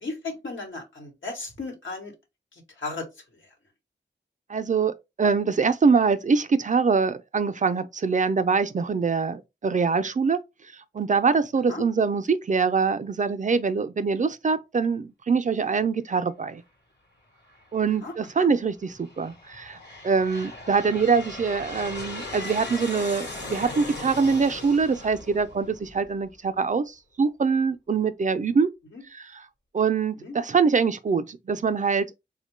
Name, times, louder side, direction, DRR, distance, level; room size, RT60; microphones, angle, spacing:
voice 1, 0.0-2.1 2.8-3.1 11.7-11.8 18.0-18.5 28.9-29.0 30.2-30.4, left 3 dB, 85° left, 1.1 m, -35 dB
voice 2, 4.5-10.4 10.9-16.6 17.7-19.8 20.0-28.7 29.1-29.4 29.7-32.1, right 5 dB, 40° right, 0.4 m, -24 dB
Aircraft, 17.5-18.1 18.8-26.3, left 2 dB, 65° left, 1.0 m, -38 dB
3.5 x 2.1 x 3.1 m
wide cardioid pair, 60°, 19 cm